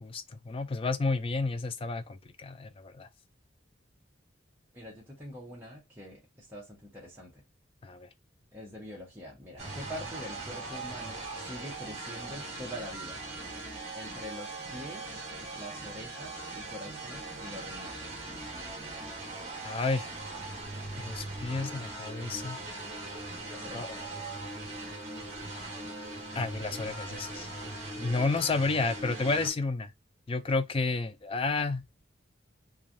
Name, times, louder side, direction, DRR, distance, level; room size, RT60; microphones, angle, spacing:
voice 1, 0.0-3.1 7.8-8.1 19.6-20.1 21.0-22.6 23.7-23.9 26.3-27.5 28.0-29.9 30.3-31.8, left 3 dB, 30° left, 0.3 m, -31 dB
voice 2, 4.7-7.4 8.5-13.2 13.9-15.3 15.5-18.1 23.5-23.9, left 1 dB, 10° right, 0.9 m, -44 dB
sound 1, 9.6-29.5, right 2 dB, 35° right, 1.3 m, -40 dB
3.1 x 2.3 x 2.6 m
head